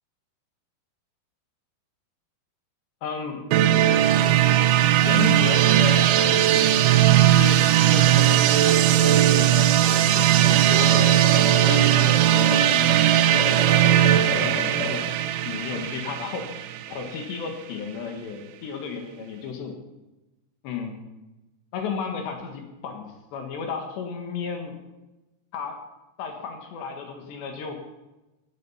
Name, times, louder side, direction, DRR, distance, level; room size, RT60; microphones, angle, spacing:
voice 1, 3.0-3.5 5.0-6.7 7.3-11.1 11.7-15.0 15.4-16.6 16.9-19.8 20.6-21.0 21.7-24.8 25.5-25.8 26.2-27.8, left 6 dB, 75° left, 4 dB, 3.8 m, -33 dB
sound 1, 3.5-17.2, right 12 dB, 85° right, 3.2 m, -18 dB
sound 2, 10.0-15.2, left 1 dB, 50° left, 3.8 m, -32 dB
17.0 x 10.5 x 5.7 m, 1.0 s
omnidirectional pair, 5.2 m